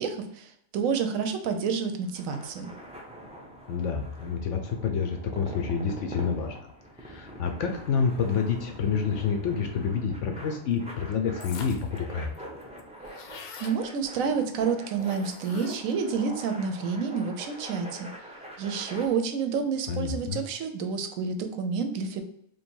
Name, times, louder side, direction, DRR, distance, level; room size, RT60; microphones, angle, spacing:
voice 1, 0.0-2.7 13.6-18.1 18.6-22.2, right 6 dB, 70° right, 7 dB, 0.9 m, -29 dB
sound 1, 2.0-19.0, equal, 10° right, 0.4 m, -44 dB
voice 2, 3.7-6.7 7.0-12.5 19.9-20.4, left 6 dB, 65° left, 4 dB, 0.8 m, -28 dB
sound 2, 11.4-12.0 12.3-12.4 12.6-13.8 15.0-16.0, left 5 dB, 85° left, 1.1 m, -43 dB
3.1 x 2.7 x 4.4 m, 0.74 s
omnidirectional pair, 1.5 m